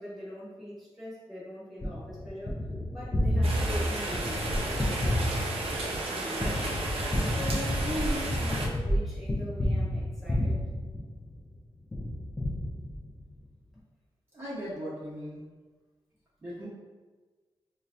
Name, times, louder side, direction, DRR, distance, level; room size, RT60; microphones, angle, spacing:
voice 1, 0.0-2.6 2.9-5.6 6.1-6.7 7.2-10.6, equal, ahead, -8 dB, 1.0 m, -40 dB
Gunshot gunfire, 1.8-11.5 11.9-13.3, left 1 dB, 20° left, 0.4 m, -30 dB
Rain, 3.4-8.7, right 2 dB, 75° right, 0.5 m, -33 dB
voice 2, 14.3-15.4 16.4-16.7, equal, 25° right, -9 dB, 0.9 m, -38 dB
4.4 x 2.2 x 2.5 m, 1.3 s
wide cardioid pair, 145°, 10 cm